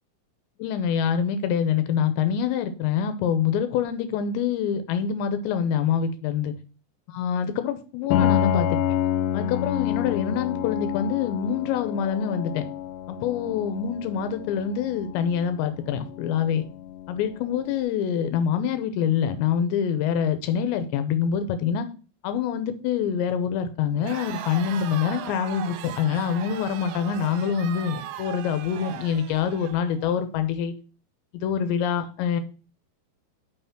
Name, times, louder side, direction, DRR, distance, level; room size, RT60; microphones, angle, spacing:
voice 1, 0.6-6.5 7.1-8.8 9.3-12.6 13.1-16.6 17.1-21.9 22.2-30.7 31.3-32.4, left 8 dB, 90° left, 9 dB, 3.0 m, -25 dB
Piano, 8.1-17.7, left 10 dB, 70° left, 2.5 m, -28 dB
Crowd, 24.0-30.2, right 11 dB, 80° right, 2.6 m, -38 dB
5.9 x 5.7 x 6.0 m, 0.35 s
omnidirectional pair, 5.1 m